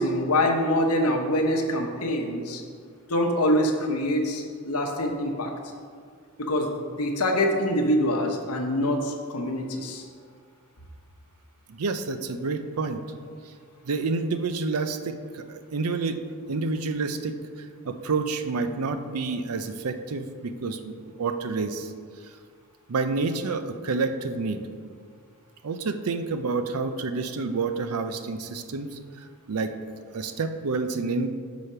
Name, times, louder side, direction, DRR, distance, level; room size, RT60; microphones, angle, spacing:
voice 1, 0.0-2.6 3.1-5.5 6.4-6.7 7.0-10.0, left 1 dB, 80° left, 2 dB, 1.0 m, -25 dB
voice 2, 11.7-13.0 13.8-16.2 16.5-17.3 17.8-21.9 22.9-24.6 25.6-29.0 29.5-29.7 30.1-31.3, right 4 dB, 80° right, 9 dB, 0.5 m, -28 dB
6.2 x 5.0 x 5.5 m, 2.1 s
head